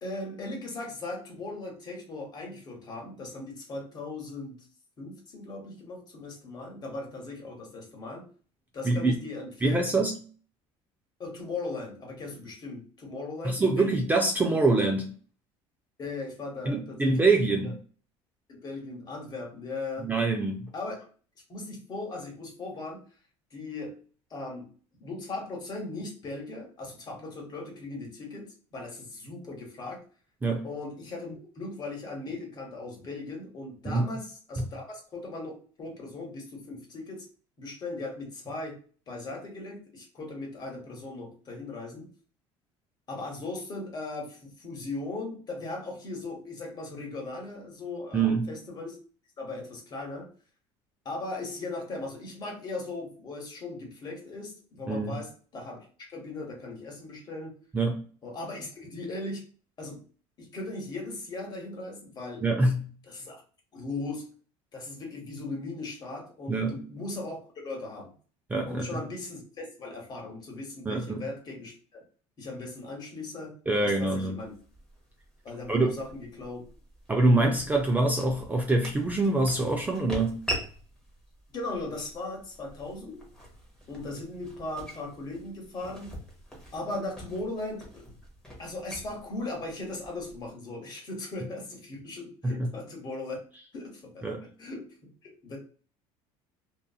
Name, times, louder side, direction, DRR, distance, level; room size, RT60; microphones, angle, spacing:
voice 1, 0.0-4.5 5.0-8.3 8.7-9.9 11.2-14.1 16.0-17.3 18.5-20.1 20.7-21.1 21.5-23.0 23.5-23.9 24.3-24.7 25.0-30.0 30.6-37.3 37.6-38.8 39.1-42.1 43.1-49.0 49.4-50.3 51.0-57.6 58.2-59.4 59.8-60.0 60.4-62.4 63.0-63.3 63.7-64.3 64.7-68.1 68.7-72.0 72.4-73.5 73.8-74.5 75.4-76.6 81.5-83.2 83.9-86.1 86.7-88.1 88.6-93.4 93.7-94.3 94.6-94.9 95.2-95.6, left 2 dB, 35° left, 1.1 m, -38 dB
voice 2, 8.8-9.2 9.6-10.2 13.4-15.1 16.7-17.8 20.0-20.7 30.4-30.7 33.9-34.1 34.6-34.7 48.1-48.5 54.9-55.2 57.7-58.0 62.4-62.9 66.5-66.8 68.5-68.9 70.9-71.2 73.7-74.4 75.7-75.9 77.1-80.5 92.4-92.7 94.2-94.5, right 2 dB, 15° right, 0.4 m, -25 dB
sound 1, 74.4-90.5, equal, 5° left, 0.9 m, -43 dB
2.7 x 2.4 x 2.3 m
cardioid pair, 120°, 13 cm